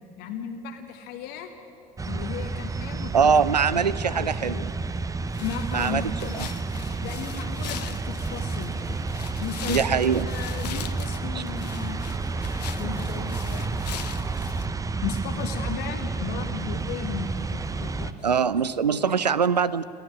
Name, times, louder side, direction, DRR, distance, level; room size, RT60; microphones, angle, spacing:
voice 1, 0.2-1.5 2.1-3.4 3.7-4.7 5.4-6.4 7.0-9.0 9.4-12.1 12.8-13.8 15.0-18.5 18.9-19.2, left 7 dB, 55° left, 5 dB, 1.2 m, -36 dB
sound 1, 2.0-18.1, right 3 dB, 15° right, 0.7 m, -30 dB
voice 2, 3.1-4.7 5.7-6.0 6.4-6.5 9.7-10.3 11.3-11.4 18.2-19.8, right 6 dB, 85° right, 17 dB, 0.5 m, -22 dB
sound 2, 5.3-14.7, left 10 dB, 75° left, 0.7 m, -41 dB
23.0 x 15.5 x 7.5 m, 2.7 s
figure-of-eight pair, 60°, 21 cm